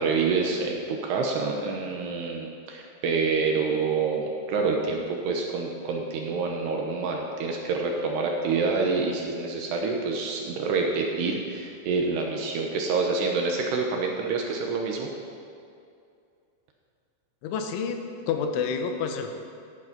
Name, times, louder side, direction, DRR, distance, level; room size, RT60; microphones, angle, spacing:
voice 1, 0.0-15.1, right 4 dB, 70° right, 1 dB, 2.9 m, -27 dB
voice 2, 17.4-19.4, left 6 dB, 80° left, 5 dB, 3.5 m, -29 dB
15.5 x 11.5 x 5.3 m, 2.4 s
omnidirectional pair, 5.5 m